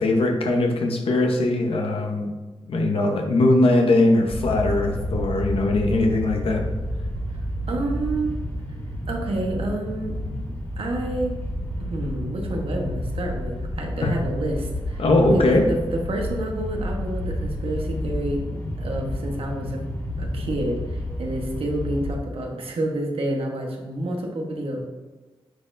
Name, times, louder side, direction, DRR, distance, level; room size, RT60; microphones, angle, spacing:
voice 1, 0.0-2.3 2.7-6.6 14.0-14.1 15.0-15.7, left 2 dB, 80° left, 2 dB, 1.0 m, -20 dB
sound 1, 4.3-22.1, equal, 30° left, 1.8 m, -30 dB
voice 2, 7.7-8.3 9.1-10.1 10.8-11.3 11.9-15.0 15.3-18.4 18.8-19.8 20.2-24.8, right 1 dB, 80° right, 1 dB, 1.1 m, -28 dB
9.4 x 4.4 x 2.6 m, 1.3 s
wide cardioid pair, 80°, 9 cm